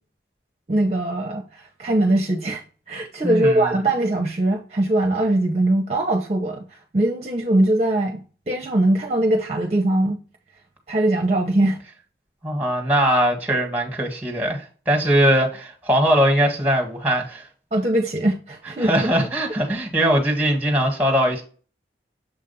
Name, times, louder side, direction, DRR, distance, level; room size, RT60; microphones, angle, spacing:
voice 1, 0.7-8.2 8.5-10.2 10.9-11.8 17.7-18.9, right 1 dB, 35° right, 0.7 m, -21 dB
voice 2, 3.2-3.7 12.4-17.5 18.8-21.4, equal, 10° right, 1.4 m, -20 dB
7.1 x 2.5 x 5.4 m
head